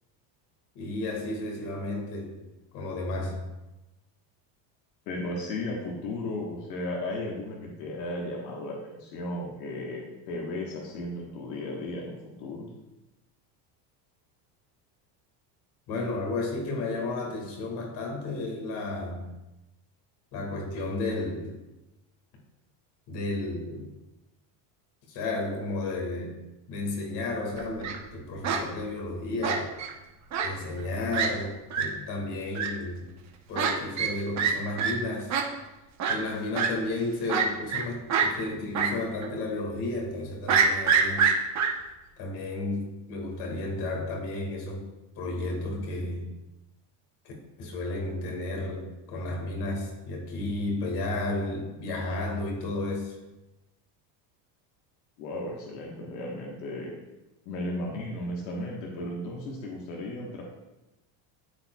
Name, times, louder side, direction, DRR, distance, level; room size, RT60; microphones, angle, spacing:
voice 1, 0.8-2.5 2.7-3.5 15.9-19.3 20.3-21.6 23.1-23.9 25.1-29.7 30.4-33.0 33.5-35.4 36.1-41.3 42.2-44.9 45.2-46.3 47.2-47.3 47.6-53.2, left 2 dB, 55° left, 0 dB, 2.1 m, -33 dB
voice 2, 5.1-12.7 55.2-56.9 57.4-60.4, left 1 dB, 85° left, -2 dB, 1.5 m, -35 dB
Fowl, 27.6-28.0 28.4-28.6 29.4-29.9 30.3-30.5 30.8-30.9 31.1-31.3 31.7-31.8 32.5-32.7 33.5-33.7 34.0-34.1 34.4-34.5 34.8-34.9 35.3-35.4 36.0-36.1 36.5-36.7 37.3-37.8 38.1-38.3 38.7-38.9 39.2-39.3 40.5-41.7, right 7 dB, 35° right, 1.0 m, -24 dB
13.0 x 4.4 x 2.4 m, 1.0 s
cardioid pair, 145°, 48 cm